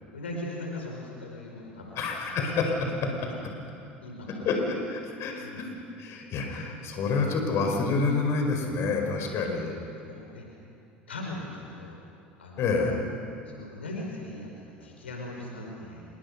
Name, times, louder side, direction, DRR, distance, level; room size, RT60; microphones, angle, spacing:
voice 1, 0.1-2.3 4.0-4.5 5.4-5.6 9.0-9.2 10.0-10.5 11.1-12.0 12.4-12.6 13.4-16.0, left 1 dB, 80° left, 0 dB, 4.9 m, -39 dB
voice 2, 1.9-3.3 4.4-5.7 6.0-9.8 12.6-13.1, left 4 dB, 45° left, 2 dB, 4.7 m, -28 dB
27.5 x 23.0 x 6.7 m, 2.6 s
figure-of-eight pair, 75°, 6 cm